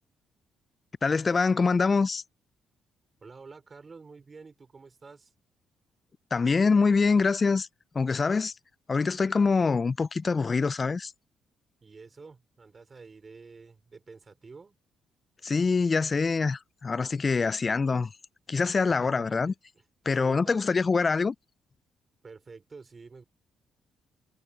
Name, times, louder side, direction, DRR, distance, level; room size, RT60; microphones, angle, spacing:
voice 1, 1.0-2.2 6.3-7.7 7.9-8.5 8.9-11.1 15.4-18.1 18.5-19.5 20.1-21.4, left 4 dB, 35° left, 0.3 m, -24 dB
voice 2, 3.2-5.3 11.8-14.8 18.9-19.8 20.1-20.9 22.2-23.2, right 4 dB, 35° right, 5.1 m, -49 dB
cardioid pair, 90°, 0 cm